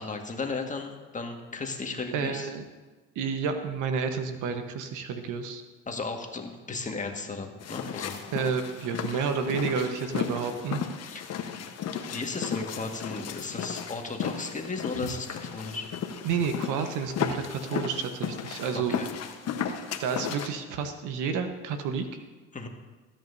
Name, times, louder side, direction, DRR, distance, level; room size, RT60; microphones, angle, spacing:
voice 1, 0.0-2.5 5.9-8.2 11.0-11.3 11.5-11.7 12.1-15.9 18.7-19.1 22.5-22.7, left 3 dB, 20° left, 3 dB, 1.8 m, -35 dB
voice 2, 2.1-2.6 3.1-5.6 8.3-10.8 15.0-15.1 16.2-19.0 20.0-22.1, right 6 dB, 65° right, 7 dB, 1.2 m, -30 dB
sound 1, 7.6-20.5, left 7 dB, 50° left, 1.2 m, -35 dB
20.0 x 9.1 x 2.7 m, 1.3 s
hypercardioid pair, 75°, 33 cm